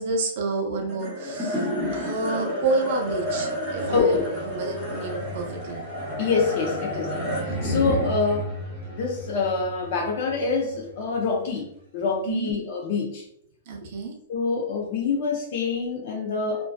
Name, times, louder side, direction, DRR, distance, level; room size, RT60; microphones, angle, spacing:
voice 1, 0.0-4.2 4.5-5.8 12.3-12.5 13.7-14.1, right 3 dB, 40° right, 2 dB, 0.5 m, -29 dB
sound 1, 0.9-11.4, equal, 5° right, 0.7 m, -31 dB
voice 2, 3.9-4.3 6.2-8.5 8.9-13.2 14.3-16.6, left 4 dB, 40° left, 0 dB, 0.4 m, -26 dB
2.5 x 2.2 x 2.2 m, 0.68 s
hypercardioid pair, 175°, 0 cm